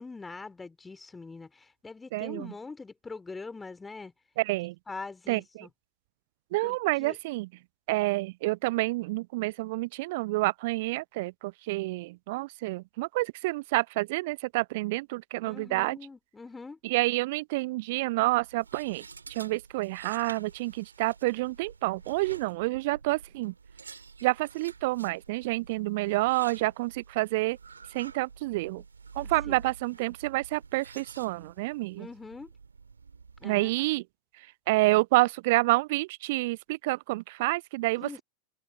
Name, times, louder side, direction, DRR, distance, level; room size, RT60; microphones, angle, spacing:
voice 1, 0.0-4.1 4.9-5.7 6.6-7.1 15.4-16.8 29.2-29.6 32.0-32.5 33.4-33.7 38.0-38.2, left 4 dB, 10° left, 3.0 m, -43 dB
voice 2, 2.1-2.5 4.4-4.7 5.3-5.7 6.5-7.5 7.9-16.0 16.8-19.0 19.3-23.5 24.2-27.6 27.9-28.8 29.2-32.1 33.4-34.0 34.4-38.2, right 21 dB, 50° right, 0.5 m, -28 dB
sound 1, 18.3-33.7, right 5 dB, 75° right, 2.0 m, -49 dB
figure-of-eight pair, 90°, 0 cm